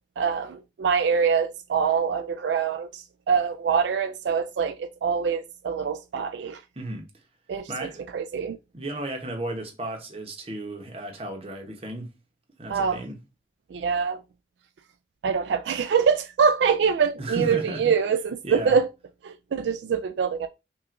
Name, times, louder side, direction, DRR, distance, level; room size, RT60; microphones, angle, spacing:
voice 1, 0.2-6.6 7.5-8.6 12.7-13.0 13.7-14.2 15.2-18.9 19.2-20.5, right 6 dB, 80° right, 0.3 m, -24 dB
voice 2, 6.8-7.1 7.7-8.1 8.7-12.1 12.6-13.2 17.2-17.8 18.4-18.7, right 1 dB, 35° right, 0.8 m, -34 dB
5.8 x 2.4 x 2.5 m
head